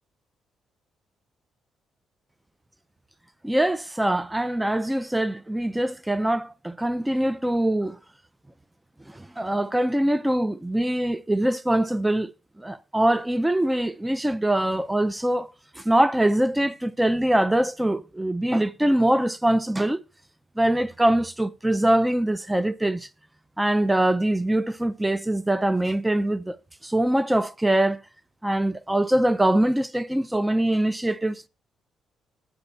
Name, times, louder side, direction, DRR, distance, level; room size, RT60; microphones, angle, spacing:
voice 1, 3.4-8.0 9.1-12.3 12.6-20.0 20.6-23.1 23.6-26.6 26.8-28.0 28.4-31.5, right 1 dB, 10° right, 0.5 m, -23 dB
9.9 x 4.1 x 6.8 m
cardioid pair, 90°, 0 cm